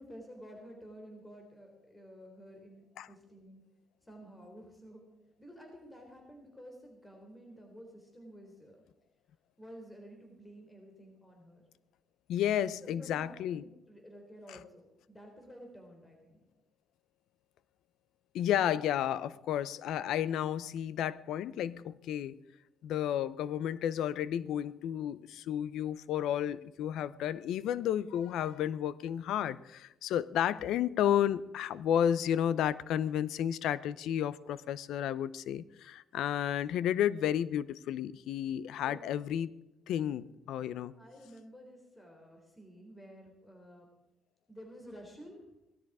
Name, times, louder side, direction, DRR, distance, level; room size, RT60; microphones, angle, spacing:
voice 1, 0.0-3.6 4.0-5.0 5.4-8.8 9.6-11.6 12.7-16.4 38.8-39.1 40.1-40.3 41.0-43.9 44.5-45.4, equal, 15° left, 2 dB, 3.7 m, -52 dB
voice 2, 12.3-13.6 14.5-14.6 18.3-22.3 22.8-39.5 39.9-40.9, left 10 dB, 85° left, 18 dB, 0.6 m, -32 dB
17.5 x 13.0 x 4.9 m, 0.90 s
cardioid pair, 100°, 0 cm